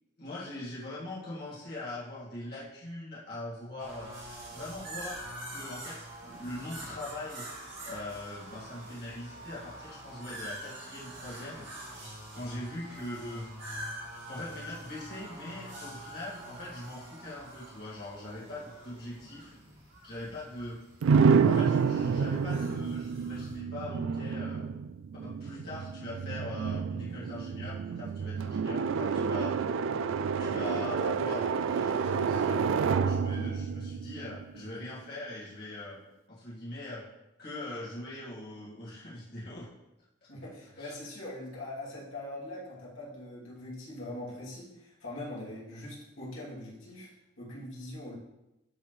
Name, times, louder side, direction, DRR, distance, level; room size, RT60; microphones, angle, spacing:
voice 1, 0.2-4.1 4.5-7.6 7.8-11.7 12.3-13.5 14.3-19.6 20.0-20.8 21.4-24.7 25.2-29.6 30.4-32.6 32.9-36.0 36.3-37.1 37.4-39.7 40.8-41.0, left 1 dB, 50° left, -7 dB, 2.1 m, -41 dB
sound 1, 3.8-23.6, right 1 dB, 60° right, 2.4 m, -45 dB
sound 2, 21.0-34.8, right 6 dB, 75° right, 0.3 m, -29 dB
voice 2, 40.3-48.2, left 1 dB, 85° left, -6 dB, 2.7 m, -42 dB
12.5 x 4.3 x 3.2 m, 0.92 s
head